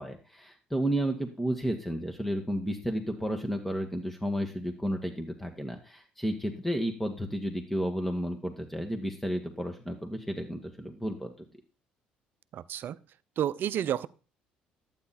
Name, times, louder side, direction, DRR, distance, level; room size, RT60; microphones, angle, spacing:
voice 1, 0.0-11.3, equal, 5° left, 3 dB, 1.7 m, -32 dB
voice 2, 12.5-13.0 13.4-14.1, right 10 dB, 55° right, 17 dB, 0.6 m, -30 dB
11.5 x 9.0 x 4.2 m, 0.35 s
hypercardioid pair, 55°, 4 cm